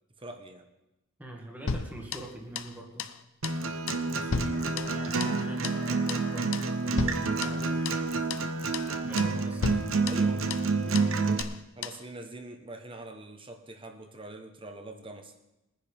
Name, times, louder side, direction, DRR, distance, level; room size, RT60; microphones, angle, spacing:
voice 1, 0.2-0.7 10.0-11.2 11.7-15.3, right 1 dB, 25° right, 6 dB, 1.2 m, -44 dB
voice 2, 1.2-3.1 4.1-7.9 9.1-9.9, right 1 dB, 10° right, 0 dB, 2.1 m, -44 dB
sound 1, 1.7-2.7 3.0-3.2 3.4-3.6 3.9-5.4 5.6-5.8 6.1-6.3 6.5-6.7 7.0-8.0 8.3-8.5 8.7-8.9 9.2-9.4 9.6-10.7 11.0-11.1 11.4-11.6 11.8-12.0, left 5 dB, 70° left, 0.6 m, -35 dB
Acoustic guitar, 3.4-11.4, right 4 dB, 80° right, 0.9 m, -28 dB
Chicken rooster, 4.5-10.4, left 3 dB, 45° left, 2.1 m, -48 dB
21.5 x 10.0 x 3.6 m, 0.93 s
head